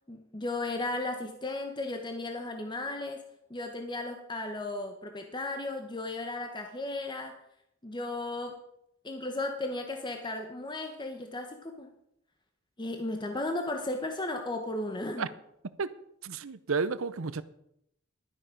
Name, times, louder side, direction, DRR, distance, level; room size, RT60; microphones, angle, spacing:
voice 1, 0.1-3.2 3.5-7.4 7.8-8.6 9.0-11.9 12.8-15.3, left 2 dB, 20° left, 4 dB, 1.1 m, -35 dB
voice 2, 16.2-17.4, right 4 dB, 85° right, 15 dB, 0.7 m, -31 dB
12.0 x 10.0 x 5.1 m, 0.77 s
head